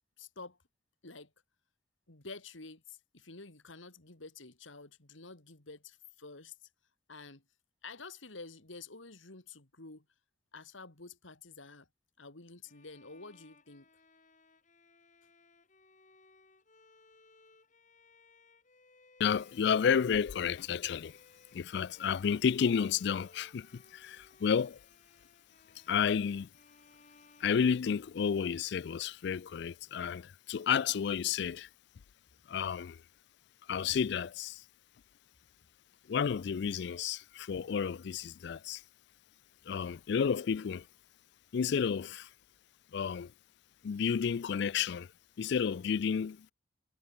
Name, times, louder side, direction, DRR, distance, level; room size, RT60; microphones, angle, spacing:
voice 1, 0.2-0.6 1.0-1.3 2.1-6.7 7.1-7.4 7.8-10.1 10.5-11.9 12.2-13.9 32.3-32.4, left 3 dB, 85° left, 2.9 m, -49 dB
Bowed string instrument, 12.7-28.5, left 3 dB, 40° left, 5.1 m, -63 dB
voice 2, 19.2-21.2 21.5-24.8 25.9-26.5 27.4-31.7 32.5-33.0 33.7-34.6 36.1-38.8 39.7-40.9 41.5-42.3 42.9-43.3 43.8-45.1 45.4-46.5, left 7 dB, 60° left, 0.4 m, -31 dB
head